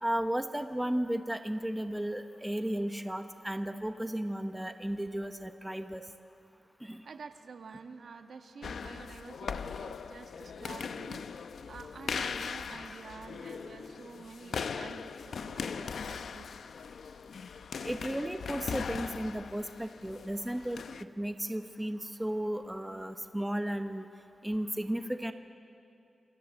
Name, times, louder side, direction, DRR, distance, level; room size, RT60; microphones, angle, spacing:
voice 1, 0.0-6.0 6.8-7.0 17.8-20.8 21.2-24.1 24.4-25.3, right 1 dB, 5° right, 7 dB, 0.9 m, -34 dB
voice 2, 7.0-11.3 11.7-16.5, right 5 dB, 65° right, 6 dB, 1.5 m, -49 dB
sound 1, 8.6-21.0, left 6 dB, 80° left, 0.7 m, -39 dB
28.0 x 25.0 x 7.8 m, 2.6 s
wide cardioid pair, 160°, 0 cm